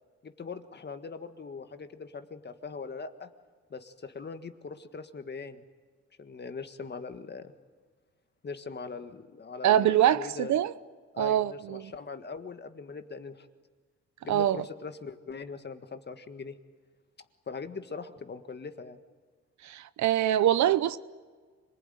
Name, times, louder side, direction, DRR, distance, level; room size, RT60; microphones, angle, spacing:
voice 1, 0.2-3.3 3.7-5.6 6.2-7.5 8.4-10.5 11.1-13.5 14.2-16.6 17.5-19.0, left 4 dB, 35° left, 1.7 m, -41 dB
voice 2, 9.6-10.7 11.2-11.9 14.3-14.7 19.6-21.0, right 11 dB, 70° right, 0.8 m, -24 dB
25.5 x 19.5 x 9.2 m
cardioid pair, 90°, 30 cm